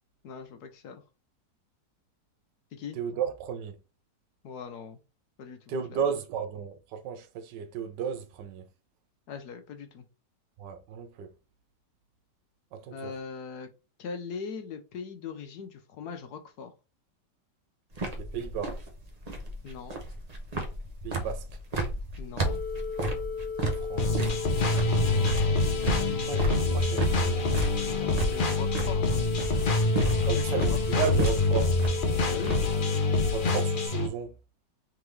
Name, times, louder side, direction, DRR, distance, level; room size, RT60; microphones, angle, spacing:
voice 1, 0.2-1.0 2.7-3.0 4.4-5.0 5.4-6.0 9.3-10.1 12.9-13.7 14.0-16.7 19.6-19.9 22.2-22.6 24.7-24.8 28.0-29.4 30.4-31.0 32.3-32.6, left 5 dB, 65° left, 1.2 m, -40 dB
voice 2, 2.9-3.8 5.7-8.6 10.6-11.3 12.7-13.1 18.3-18.8 21.0-21.4 23.6-24.2 26.2-27.5 30.2-31.7 33.3-34.3, right 7 dB, 75° right, 1.4 m, -34 dB
sound 1, 17.9-32.8, right 1 dB, 35° right, 0.7 m, -33 dB
sound 2, 22.5-33.9, left 6 dB, 85° left, 1.4 m, -35 dB
sound 3, 24.0-34.1, left 2 dB, 45° left, 0.6 m, -26 dB
3.9 x 3.6 x 3.2 m
omnidirectional pair, 1.9 m